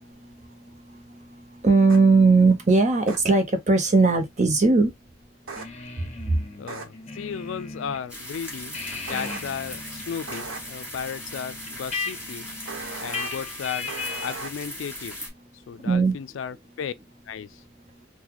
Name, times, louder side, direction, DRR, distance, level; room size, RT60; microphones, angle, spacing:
voice 1, 0.0-4.9 6.3-6.4 15.8-16.1, right 3 dB, 35° right, 0.8 m, -20 dB
sound 1, 1.9-2.0 3.1-3.2 5.5-5.7 6.7-6.8 9.1-9.4 10.3-10.6 12.7-13.3 13.9-14.5, right 3 dB, 90° right, 1.0 m, -36 dB
sound 2, 5.6-8.0 8.4-14.5, left 4 dB, 35° left, 0.7 m, -37 dB
voice 2, 6.6-8.8 9.1-12.5 13.0-13.9 14.2-15.2 15.7-16.9 17.3-17.6, left 7 dB, 70° left, 0.4 m, -34 dB
sound 3, 8.1-15.3, equal, 5° right, 2.0 m, -39 dB
3.9 x 2.2 x 2.9 m
head